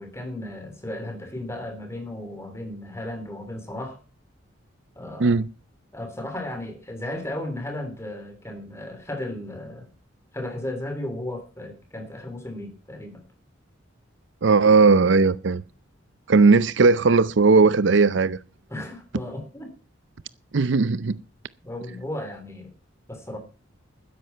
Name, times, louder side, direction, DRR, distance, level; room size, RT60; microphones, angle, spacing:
voice 1, 0.0-4.0 4.9-5.4 5.9-9.9 10.3-13.2 18.7-19.7 21.6-22.7 23.1-23.4, left 1 dB, 15° left, 3.5 m, -35 dB
voice 2, 14.4-15.6 16.3-18.4 20.5-21.2, right 4 dB, 65° right, 0.5 m, -17 dB
12.5 x 10.5 x 5.6 m
head